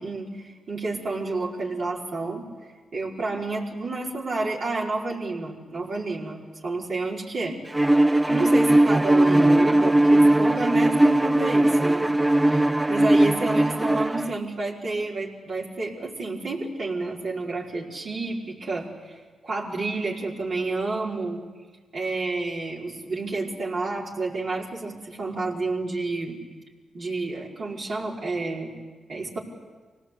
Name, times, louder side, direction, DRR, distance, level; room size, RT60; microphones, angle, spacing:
voice 1, 0.0-2.5 2.9-7.5 8.3-12.1 12.5-21.4 21.9-26.4 26.9-28.7 29.1-29.4, right 3 dB, 60° right, -4 dB, 4.8 m, -30 dB
Bowed string instrument, 7.7-14.3, right 1 dB, 15° right, 0.7 m, -19 dB
25.5 x 18.0 x 8.5 m, 1.3 s
cardioid pair, 55°, 0 cm